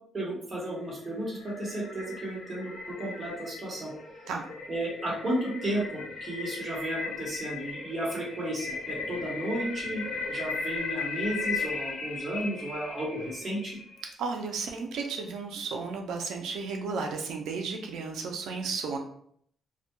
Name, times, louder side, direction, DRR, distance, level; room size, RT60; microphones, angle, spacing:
voice 1, 0.1-3.9 4.7-10.0 10.3-13.7, right 1 dB, 30° right, -4 dB, 1.0 m, -33 dB
sound 1, 0.8-14.1, left 3 dB, 85° left, 0.6 m, -37 dB
voice 2, 14.2-19.0, right 4 dB, 90° right, 2 dB, 0.4 m, -33 dB
2.2 x 2.1 x 2.9 m, 0.64 s
cardioid pair, 125°, 0 cm